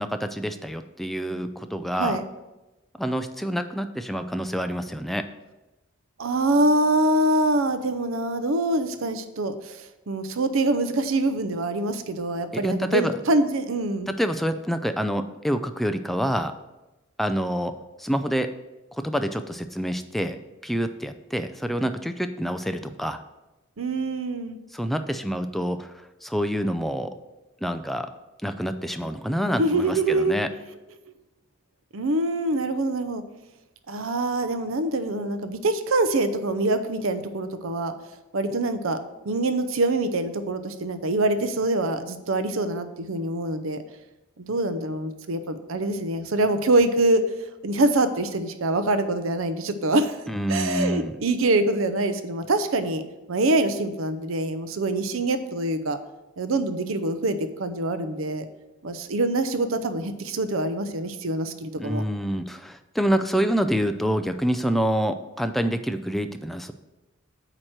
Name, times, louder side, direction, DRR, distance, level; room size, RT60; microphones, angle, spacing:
voice 1, 0.0-2.2 3.0-5.3 12.5-13.1 14.1-16.5 17.2-17.7 18.0-18.5 18.9-20.4 20.6-23.2 24.7-27.2 27.6-28.1 28.4-30.5 50.3-51.1 61.8-66.7, equal, ahead, 8 dB, 0.3 m, -27 dB
voice 2, 6.2-14.1 23.8-24.6 29.6-30.4 31.1-31.2 31.9-33.2 33.9-37.9 38.3-39.0 39.2-43.8 44.4-47.2 47.6-50.2 50.5-53.0 53.3-56.0 56.4-58.5 58.8-62.0, right 2 dB, 75° right, 10 dB, 0.6 m, -25 dB
8.8 x 3.0 x 6.4 m, 1.0 s
head